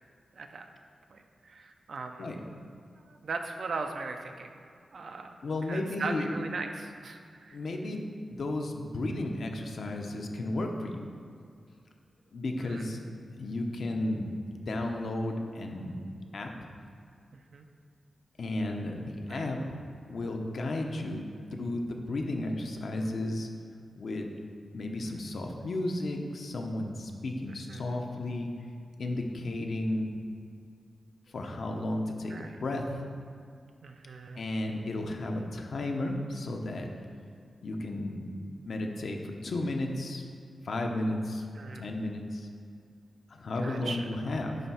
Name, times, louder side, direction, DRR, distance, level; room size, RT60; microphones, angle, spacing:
voice 1, 0.4-0.7 1.1-1.2 1.5-2.3 3.1-4.5 4.9-5.3 5.7-7.6 12.6-12.8 17.5-17.7 19.3-19.5 25.0-25.1 27.7-27.8 32.3-32.6 33.8-34.5 41.6-41.8 43.6-44.0, right 4 dB, 60° right, 5 dB, 0.6 m, -38 dB
voice 2, 5.4-6.3 7.5-11.0 12.3-13.0 13.4-16.0 16.3-16.5 18.4-19.6 20.1-23.5 24.0-24.3 24.7-28.5 29.0-30.1 31.3-33.0 34.4-36.9 37.6-38.3 38.6-40.2 40.6-41.4 41.7-42.5 43.3-44.6, left 2 dB, 60° left, 2 dB, 0.7 m, -33 dB
9.2 x 3.4 x 5.6 m, 2.3 s
wide cardioid pair, 140°, 0 cm